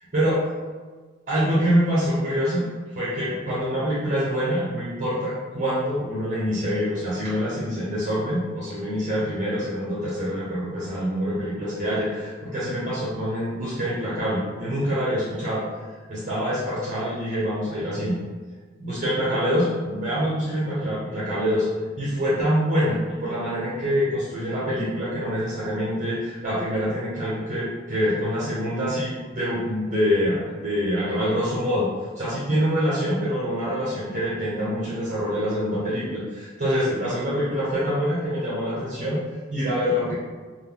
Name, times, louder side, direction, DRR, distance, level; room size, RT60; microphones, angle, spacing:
voice 1, 1.3-2.7 3.0-15.6 16.1-18.2 18.8-21.7 22.0-31.9 32.2-39.2 39.5-40.1, equal, 40° right, -10 dB, 0.8 m, -25 dB
2.2 x 2.2 x 3.5 m, 1.4 s
head